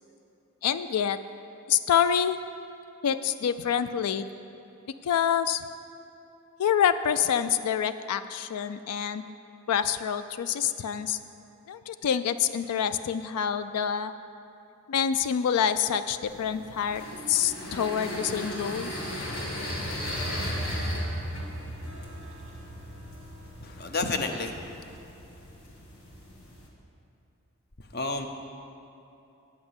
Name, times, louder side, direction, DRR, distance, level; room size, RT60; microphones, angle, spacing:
voice 1, 0.6-1.2 1.7-2.4 3.0-4.2 5.0-5.6 6.6-9.3 9.7-11.2 11.7-14.1 14.9-17.0 17.3-18.9, left 8 dB, 90° left, 12 dB, 0.4 m, -26 dB
sound 1, 16.3-26.7, equal, 70° left, 1.8 m, -36 dB
voice 2, 23.6-25.0 27.8-28.3, left 3 dB, 45° left, 6 dB, 0.7 m, -31 dB
9.4 x 5.9 x 7.9 m, 2.9 s
head